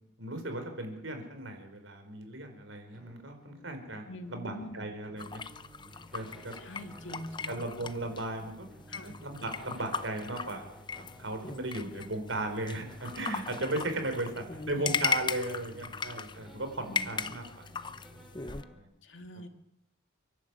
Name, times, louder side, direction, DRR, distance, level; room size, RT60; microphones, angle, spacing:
voice 1, 0.2-4.0 4.3-5.4 6.1-6.5 7.5-8.7 8.9-10.7 11.2-17.6 18.4-18.9, right 2 dB, 90° right, 6 dB, 4.9 m, -36 dB
sound 1, 2.9-18.8, equal, ahead, 4.0 m, -55 dB
voice 2, 4.1-4.8 6.6-7.6 8.9-9.2 12.0-12.1 14.8-15.0 16.9-17.1 19.0-19.5, left 1 dB, 85° left, 6 dB, 2.3 m, -44 dB
sound 2, 5.2-18.6, left 5 dB, 25° left, 0.7 m, -38 dB
29.0 x 11.5 x 8.4 m, 0.81 s
head